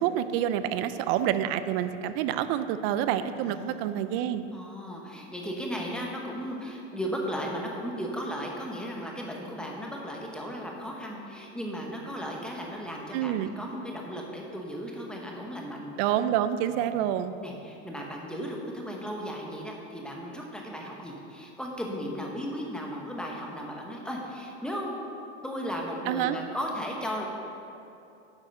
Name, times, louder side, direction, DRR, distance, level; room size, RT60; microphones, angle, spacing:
voice 1, 0.0-4.4 13.1-13.5 16.0-17.3 26.1-26.4, right 11 dB, 55° right, 12 dB, 0.6 m, -27 dB
voice 2, 3.4-3.9 4.5-15.9 17.4-25.0 25.4-27.3, equal, ahead, -1 dB, 1.1 m, -36 dB
8.9 x 6.0 x 5.4 m, 2.7 s
supercardioid pair, 135°, 35 cm